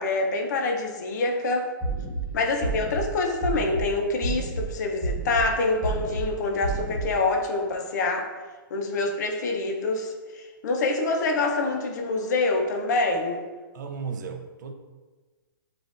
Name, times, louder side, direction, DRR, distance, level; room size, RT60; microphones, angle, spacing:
voice 1, 0.0-1.7 2.3-8.3 8.7-13.4, left 3 dB, 50° left, 3 dB, 0.6 m, -26 dB
sound 1, 1.8-2.2 2.6-3.0 3.4-3.8 4.2-4.6 5.0-5.4 5.8-6.2 6.6-7.0, right 3 dB, ahead, 0.7 m, -29 dB
voice 2, 2.2-2.5 13.7-14.7, right 6 dB, 55° right, 5 dB, 0.5 m, -36 dB
7.3 x 2.5 x 2.5 m, 1.3 s
hypercardioid pair, 165°, 12 cm